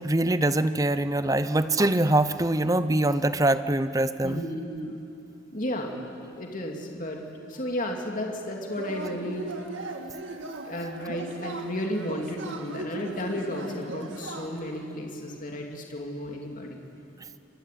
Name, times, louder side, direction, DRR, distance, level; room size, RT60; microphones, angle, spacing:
voice 1, 0.0-4.4, right 1 dB, 15° right, 12 dB, 0.7 m, -23 dB
voice 2, 4.2-5.0 5.5-6.0 6.3-9.5 10.4-16.8, left 1 dB, 40° left, 1 dB, 2.7 m, -33 dB
Yell / Cheering, 8.7-14.8, right 2 dB, 70° right, 2.1 m, -38 dB
25.5 x 23.5 x 9.3 m, 2.7 s
head